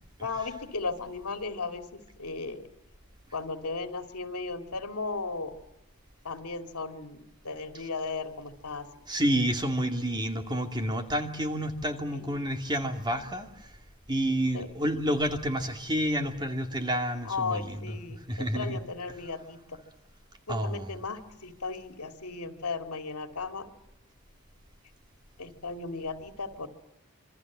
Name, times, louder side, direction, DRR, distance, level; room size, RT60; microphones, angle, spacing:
voice 1, 0.2-2.7 3.3-5.5 6.2-8.9 12.1-12.5 14.5-14.7 17.2-19.8 20.5-23.7 25.4-26.7, left 4 dB, 85° left, 6 dB, 2.7 m, -36 dB
voice 2, 9.1-13.5 14.1-17.8 18.3-18.8 20.5-21.0, equal, 20° right, 5 dB, 2.4 m, -29 dB
27.0 x 24.0 x 7.5 m, 0.89 s
head